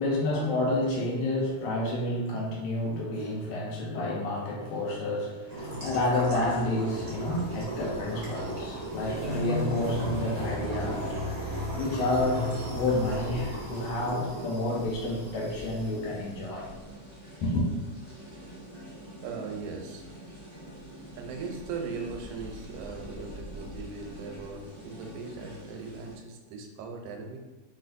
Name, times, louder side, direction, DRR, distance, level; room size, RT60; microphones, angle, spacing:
voice 1, 0.0-11.1 11.6-12.4 12.7-16.7 17.4-17.7, left 1 dB, 65° left, -2 dB, 1.8 m, -29 dB
sound 1, 5.5-15.9, equal, 40° right, 0.5 m, -35 dB
sound 2, 6.3-26.1, equal, 30° left, 0.8 m, -45 dB
voice 2, 19.2-20.1 21.2-27.4, right 4 dB, 80° right, 2 dB, 2.1 m, -39 dB
4.7 x 4.3 x 2.6 m, 1.2 s
omnidirectional pair, 3.5 m